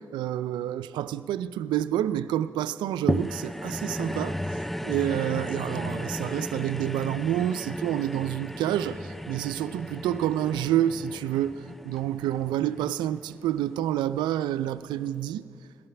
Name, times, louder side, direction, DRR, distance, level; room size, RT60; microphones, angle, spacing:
voice 1, 0.0-15.4, right 11 dB, 85° right, 0.3 m, -28 dB
sound 1, 3.1-13.6 14.2-14.3, equal, 5° left, 0.4 m, -34 dB
17.0 x 12.5 x 5.8 m
supercardioid pair, 45°, 8 cm